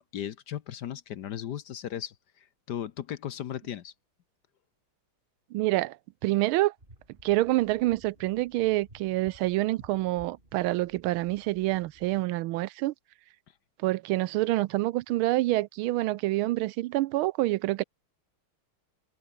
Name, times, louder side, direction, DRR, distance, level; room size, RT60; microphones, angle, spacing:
voice 1, 0.0-3.9, left 10 dB, 60° left, 1.3 m, -37 dB
voice 2, 5.5-6.0 6.2-6.7 7.2-12.9 13.8-17.8, right 17 dB, 80° right, 1.4 m, -27 dB
sound 1, 6.8-12.2, right 1 dB, 25° right, 5.8 m, -56 dB
omnidirectional pair, 2.3 m